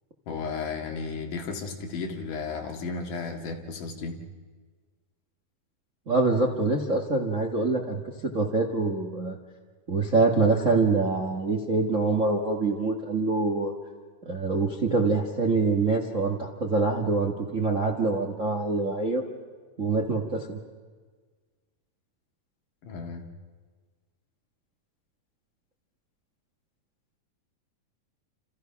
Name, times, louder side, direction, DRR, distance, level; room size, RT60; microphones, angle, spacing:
voice 1, 0.3-4.2 22.8-23.3, left 4 dB, 70° left, 3 dB, 3.6 m, -34 dB
voice 2, 6.1-9.4 9.9-13.7 14.2-19.2 19.8-20.6, right 3 dB, 35° right, 2 dB, 1.2 m, -25 dB
29.5 x 28.5 x 5.9 m, 1.5 s
omnidirectional pair, 3.9 m